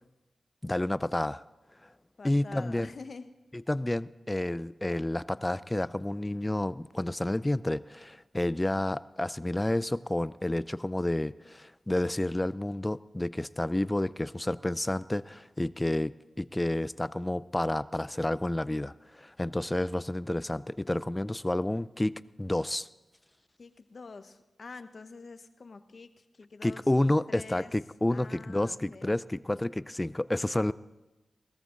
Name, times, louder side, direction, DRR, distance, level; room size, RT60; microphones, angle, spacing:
voice 1, 0.6-1.4 2.2-2.9 3.5-22.9 26.6-30.7, left 1 dB, 20° left, 17 dB, 0.4 m, -30 dB
voice 2, 2.2-3.3 23.6-26.8 27.3-27.7 28.1-29.2, left 4 dB, 60° left, 10 dB, 0.9 m, -46 dB
18.5 x 14.0 x 3.8 m, 1.1 s
cardioid pair, 60°, 0 cm